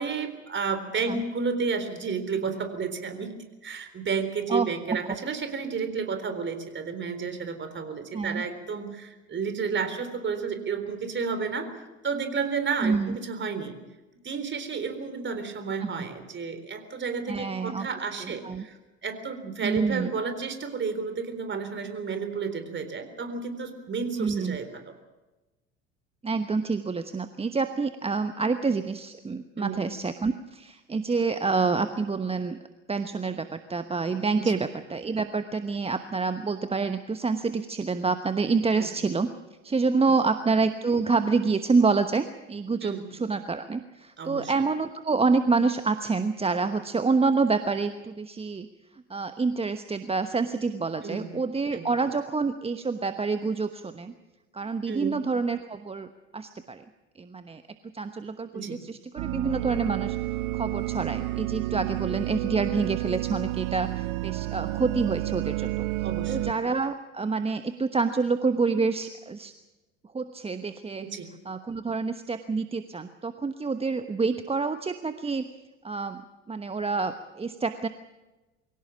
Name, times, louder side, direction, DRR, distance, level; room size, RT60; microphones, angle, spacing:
voice 1, 0.0-3.3 3.6-13.7 14.2-25.0 29.6-29.8 34.4-34.5 38.8-38.9 42.8-43.0 44.2-44.5 51.0-51.3 51.7-51.8 54.9-55.2 58.5-58.8 66.0-66.5 71.0-71.3, right 5 dB, 30° right, 9 dB, 3.9 m, -31 dB
voice 2, 4.5-5.1 8.1-8.4 12.8-13.2 15.8-16.0 17.3-17.9 18.2-18.6 19.6-20.1 24.2-24.6 26.2-32.6 32.9-39.3 39.6-48.7 49.1-54.1 54.5-56.8 57.2-57.6 57.9-60.2 60.5-65.8 66.3-69.5 70.1-71.1 71.4-75.5 75.8-76.2 76.5-77.9, right 4 dB, 15° right, 10 dB, 1.1 m, -27 dB
sound 1, 59.2-66.5, right 18 dB, 60° right, 0.9 m, -30 dB
24.0 x 17.0 x 7.3 m, 1.1 s
hypercardioid pair, 65°, 36 cm